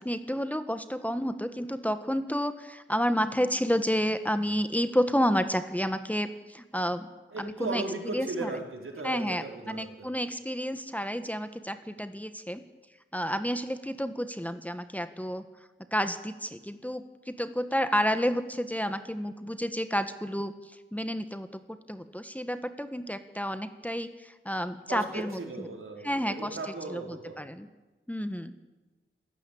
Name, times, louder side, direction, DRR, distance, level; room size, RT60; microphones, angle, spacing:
voice 1, 0.0-7.1 7.4-7.8 8.1-8.5 9.0-12.6 13.1-15.4 15.9-20.5 20.9-25.7 26.0-26.6 26.9-27.7 28.1-28.5, equal, 5° left, 10 dB, 1.4 m, -30 dB
voice 2, 7.3-10.1 24.9-27.4, right 3 dB, 80° right, 1 dB, 4.8 m, -37 dB
27.0 x 15.5 x 8.6 m, 1.1 s
wide cardioid pair, 60°, 21 cm